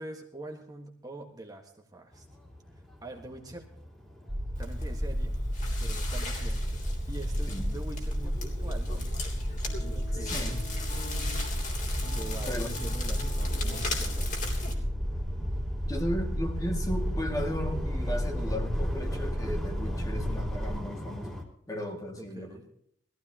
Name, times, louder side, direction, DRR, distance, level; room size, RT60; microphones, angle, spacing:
voice 1, 0.0-2.2 3.0-3.6 4.6-5.3 5.8-9.1 9.8-10.4 12.1-14.4 22.2-22.6, right 2 dB, 20° right, 2 dB, 1.6 m, -44 dB
sound 1, 2.1-21.4, left 1 dB, 5° left, 2.7 m, -42 dB
sound 2, 4.3-20.8, equal, 45° right, 3.0 m, -32 dB
Crackle, 4.5-14.7, left 3 dB, 45° left, 3.3 m, -39 dB
voice 2, 10.2-10.7 12.5-12.7 13.6-13.8 15.9-22.6, equal, 20° left, 2 dB, 2.2 m, -35 dB
20.0 x 15.0 x 2.9 m, 0.68 s
head